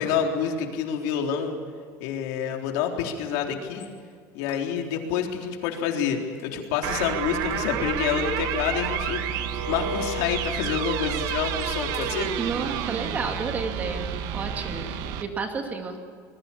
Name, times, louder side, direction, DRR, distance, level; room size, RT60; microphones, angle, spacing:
voice 1, 0.0-1.6 2.0-3.9 4.3-12.3, left 7 dB, 80° left, 2 dB, 3.8 m, -28 dB
sound 1, 3.7-3.9 4.4-5.2 5.5-5.7 6.0-8.0 8.4-9.8 10.1-10.3 10.6-12.3, left 8 dB, 35° left, 3.3 m, -52 dB
sound 2, 6.8-15.2, right 8 dB, 55° right, 1.5 m, -30 dB
voice 2, 12.4-16.0, right 4 dB, 20° right, 4 dB, 2.4 m, -31 dB
27.0 x 21.0 x 7.3 m, 2.1 s
cardioid pair, 175°, 7 cm